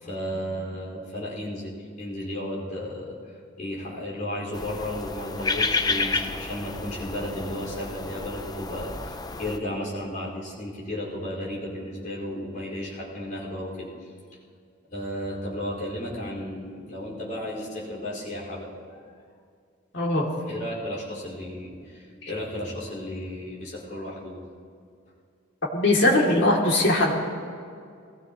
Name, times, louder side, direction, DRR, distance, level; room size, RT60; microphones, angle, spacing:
voice 1, 0.0-3.2 3.6-14.1 14.9-19.0 20.5-24.5, left 1 dB, 45° left, -6 dB, 5.0 m, -34 dB
sound 1, 4.5-9.6, left 4 dB, 20° left, 0.6 m, -30 dB
voice 2, 19.9-20.3 25.7-27.1, left 1 dB, 65° left, -2 dB, 2.8 m, -20 dB
21.5 x 17.0 x 3.1 m, 2.3 s
head